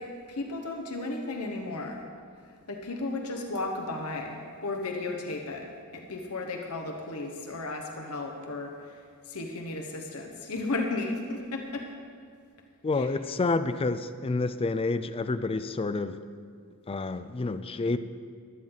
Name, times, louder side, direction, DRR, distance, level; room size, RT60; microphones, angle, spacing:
voice 1, 0.0-2.0 2.7-5.7 5.9-8.7 9.3-11.9 12.9-13.1, left 2 dB, 75° left, 2 dB, 1.2 m, -34 dB
voice 2, 12.8-16.2 16.9-18.0, left 3 dB, 25° left, 12 dB, 0.4 m, -29 dB
16.0 x 11.0 x 4.0 m, 2.1 s
head